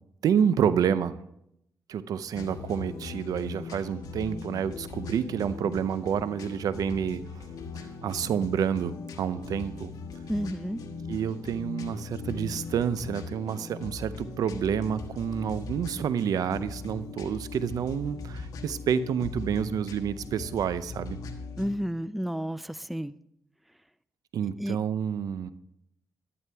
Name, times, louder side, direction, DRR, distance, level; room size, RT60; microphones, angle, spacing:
voice 1, 0.2-1.2 1.9-7.2 8.0-9.9 11.1-21.2 24.3-25.5, right 8 dB, 85° right, 14 dB, 0.5 m, -28 dB
sound 1, 2.3-21.7, left 4 dB, 80° left, 1.2 m, -40 dB
voice 2, 10.3-10.8 21.6-23.1 24.6-24.8, equal, ahead, 16 dB, 0.4 m, -31 dB
11.0 x 11.0 x 3.4 m, 0.76 s
cardioid pair, 75°, 6 cm